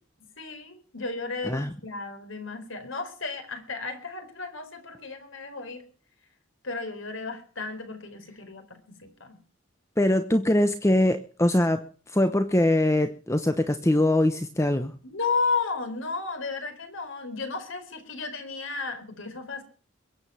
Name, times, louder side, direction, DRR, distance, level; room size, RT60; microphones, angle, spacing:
voice 1, 0.4-5.8 6.6-9.4 15.0-19.6, left 4 dB, 70° left, 8 dB, 4.5 m, -33 dB
voice 2, 10.0-14.9, left 1 dB, 15° left, 9 dB, 1.0 m, -23 dB
22.5 x 8.9 x 5.8 m, 0.40 s
head